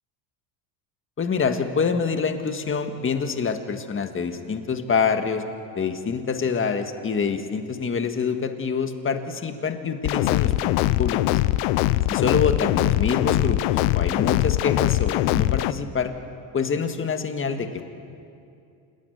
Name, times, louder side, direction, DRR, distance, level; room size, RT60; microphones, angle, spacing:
voice 1, 1.2-5.4 5.7-11.4 12.1-16.1 16.5-17.8, left 5 dB, 25° left, 7 dB, 1.7 m, -26 dB
sound 1, 10.0-15.7, left 16 dB, 85° left, 0.8 m, -22 dB
28.5 x 12.5 x 9.4 m, 2.5 s
cardioid pair, 120°, 47 cm